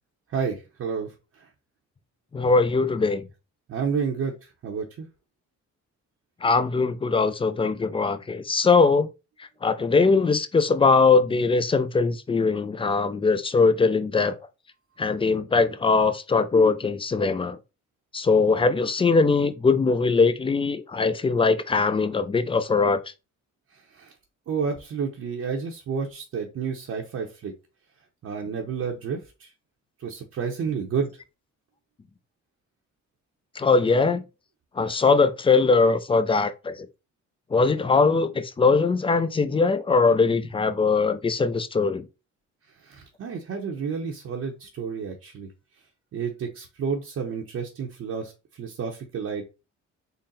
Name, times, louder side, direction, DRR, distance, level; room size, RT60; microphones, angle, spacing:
voice 1, 0.3-1.1 1.4-1.5 3.7-5.1 23.7-24.1 24.5-27.5 28.2-29.5 30.0-31.1 42.8-45.5 46.1-49.4, right 6 dB, 50° right, 0.7 m, -30 dB
voice 2, 2.3-3.2 6.4-9.1 9.6-14.4 15.0-17.6 18.1-23.0 33.6-34.2 34.8-36.9 37.5-42.1, left 4 dB, 20° left, 0.3 m, -21 dB
3.9 x 2.0 x 4.0 m
cardioid pair, 90°, 30 cm